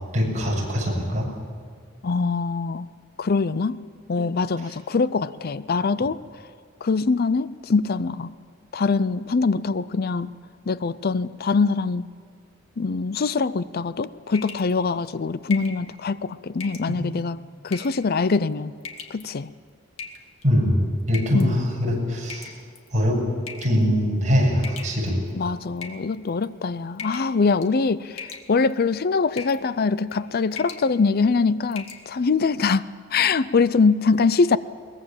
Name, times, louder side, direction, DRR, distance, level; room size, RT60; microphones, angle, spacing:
voice 1, 0.1-1.3 16.9-17.0 20.4-22.6 22.9-23.2 23.6-25.2, equal, 35° right, -2 dB, 7.6 m, -22 dB
voice 2, 2.0-2.9 3.2-3.8 4.1-6.2 6.8-8.3 8.7-10.3 10.7-12.1 12.8-17.4 17.6-18.7 19.1-19.5 21.3-21.6 25.3-32.8 33.1-34.6, left 4 dB, 50° left, 16 dB, 0.5 m, -23 dB
sound 1, 14.3-14.7 15.5-15.8 16.6-16.9 17.7-18.0 18.8-19.2 20.0-20.4 21.1-21.5 22.3-22.9 23.5-23.8 24.6-25.3 25.8-26.4 27.0-27.3 27.6-27.9 28.2-28.7 29.4-29.6 30.0-30.2 30.5-30.9 31.2-31.3 31.7-32.0, left 5 dB, 75° left, 2.1 m, -38 dB
22.5 x 21.0 x 7.3 m, 2.1 s
head